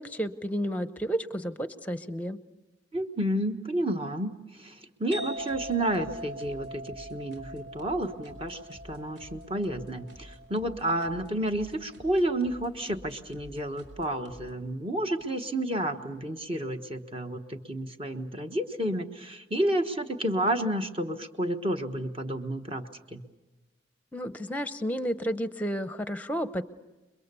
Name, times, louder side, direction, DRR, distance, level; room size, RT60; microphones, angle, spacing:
voice 1, 0.0-2.4 24.1-26.6, equal, 10° left, 11 dB, 0.8 m, -31 dB
voice 2, 2.9-23.2, right 1 dB, 30° right, 6 dB, 1.2 m, -31 dB
sound 1, 5.1-12.5, right 1 dB, 60° right, 2.2 m, -42 dB
sound 2, 5.4-14.5, left 1 dB, 80° right, 4.8 m, -51 dB
29.5 x 22.5 x 6.8 m, 1.1 s
head